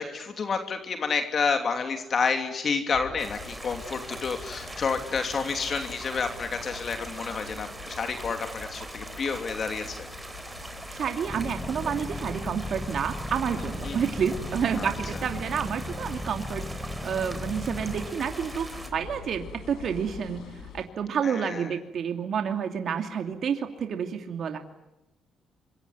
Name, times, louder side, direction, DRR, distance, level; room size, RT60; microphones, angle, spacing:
voice 1, 0.0-10.1 13.8-14.0 14.8-14.9 21.2-21.7, left 5 dB, 50° left, 6 dB, 3.0 m, -29 dB
sound 1, 2.9-20.8, left 4 dB, 80° left, 5.8 m, -44 dB
sound 2, 3.2-18.9, right 2 dB, 15° right, 4.0 m, -42 dB
voice 2, 10.9-16.7 17.0-18.7 18.9-20.4 20.7-24.6, right 7 dB, 60° right, 5 dB, 2.6 m, -29 dB
sound 3, 11.3-18.1, left 1 dB, 15° left, 2.2 m, -36 dB
26.5 x 24.0 x 9.5 m, 0.94 s
cardioid pair, 90°, 0 cm